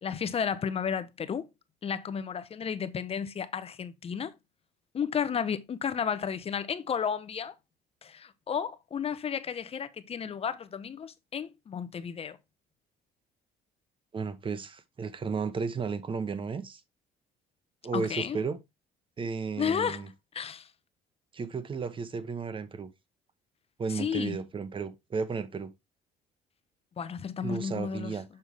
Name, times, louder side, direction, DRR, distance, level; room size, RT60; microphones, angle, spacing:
voice 1, 0.0-1.5 1.8-4.3 4.9-7.5 8.0-12.4 17.9-18.4 19.6-20.0 20.3-20.7 23.9-24.4 27.0-28.2, left 7 dB, 35° left, 0.7 m, -32 dB
voice 2, 14.1-16.8 17.8-18.6 19.2-20.1 21.3-22.9 23.8-25.7 27.4-28.2, right 5 dB, 30° right, 0.9 m, -33 dB
6.7 x 5.4 x 3.4 m
cardioid pair, 110°, 17 cm